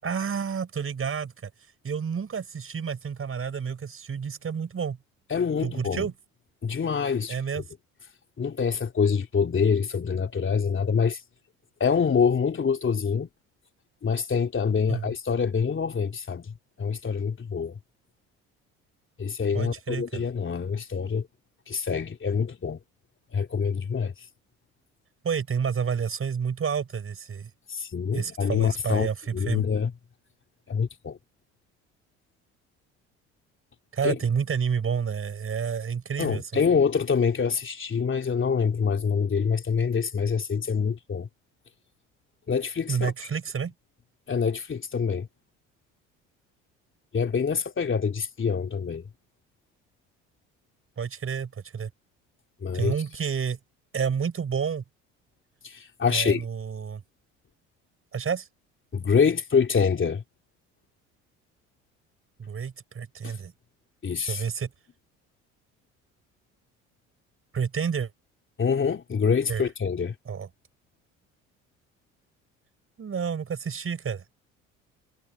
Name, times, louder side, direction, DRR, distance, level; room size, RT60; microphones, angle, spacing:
voice 1, 0.0-1.5 1.8-5.0 5.6-6.1 7.3-7.6 14.9-15.1 19.5-20.2 25.2-27.5 28.1-29.6 33.9-36.4 42.9-43.7 51.0-51.9 52.7-53.6 53.9-54.8 56.1-57.0 58.1-58.5 62.4-63.5 64.2-64.7 67.5-68.1 69.5-69.6 70.3-70.5 73.0-74.3, right 6 dB, 40° right, 5.5 m, -29 dB
voice 2, 5.3-6.1 6.6-7.4 8.4-11.2 11.8-13.3 14.0-17.7 19.2-21.3 21.7-22.8 23.3-24.1 27.7-29.9 30.7-31.2 34.0-34.2 36.2-41.3 42.5-43.1 44.3-45.3 47.1-49.0 52.6-52.9 55.6-56.4 58.9-60.2 63.2-63.4 64.0-64.4 68.6-70.1, left 6 dB, 35° left, 3.0 m, -25 dB
hypercardioid pair, 65°, 35 cm